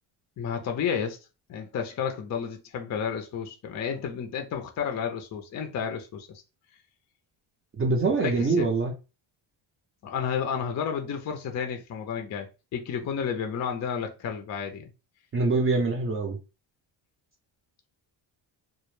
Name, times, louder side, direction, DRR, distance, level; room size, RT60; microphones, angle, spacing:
voice 1, 0.4-1.2 1.5-6.4 8.2-8.7 10.0-14.9, left 7 dB, 40° left, 0.4 m, -31 dB
voice 2, 7.8-8.9 15.3-16.4, right 3 dB, 30° right, 0.5 m, -24 dB
2.1 x 2.0 x 3.0 m
cardioid pair, 100°, 47 cm